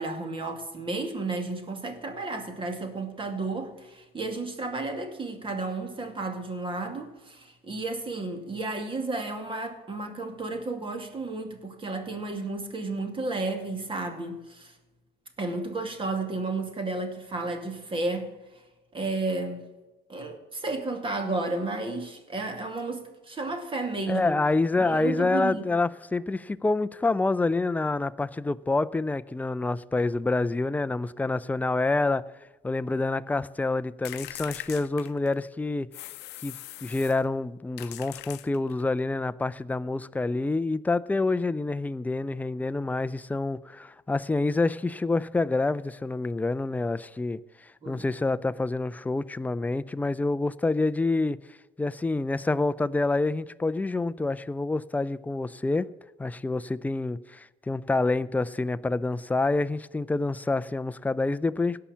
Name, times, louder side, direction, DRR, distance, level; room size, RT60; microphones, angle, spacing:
voice 1, 0.0-14.7 15.4-18.6 18.9-19.6 20.1-24.4 24.9-25.7 47.8-48.0, right 3 dB, 30° right, 2.4 m, -32 dB
voice 2, 24.1-32.2 32.6-35.9 36.4-51.4 51.8-55.9 56.2-61.8, left 3 dB, 10° left, 0.4 m, -27 dB
sound 1, 34.0-35.5 35.9-37.2 37.8-38.9, left 17 dB, 85° left, 0.6 m, -41 dB
17.0 x 5.7 x 7.4 m
cardioid pair, 110°, 17 cm